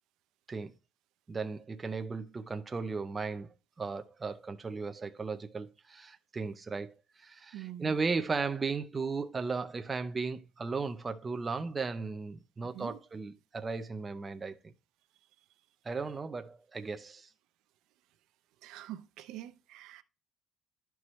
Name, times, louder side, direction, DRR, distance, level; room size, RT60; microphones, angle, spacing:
voice 1, 1.3-14.7 15.8-17.3, right 4 dB, 20° right, 0.5 m, -36 dB
voice 2, 7.5-8.0 12.7-13.0 18.6-20.0, right 13 dB, 80° right, 0.5 m, -45 dB
11.0 x 4.6 x 3.1 m
cardioid pair, 165°, 0 cm